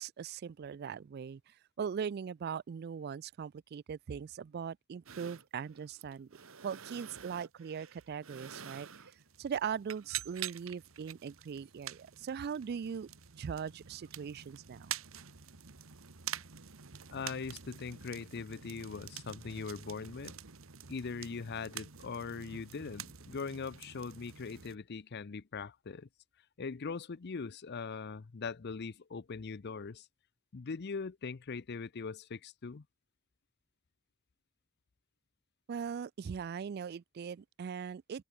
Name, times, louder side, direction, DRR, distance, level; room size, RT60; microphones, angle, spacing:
voice 1, 0.0-6.3 6.6-9.1 9.4-14.9 35.7-38.2, right 7 dB, 50° right, 0.3 m, -40 dB
sound 1, 5.1-24.8, right 9 dB, 75° right, 1.5 m, -47 dB
voice 2, 17.1-20.3 20.9-26.1 26.6-30.1 30.5-32.8, left 5 dB, 50° left, 0.6 m, -41 dB
open air
head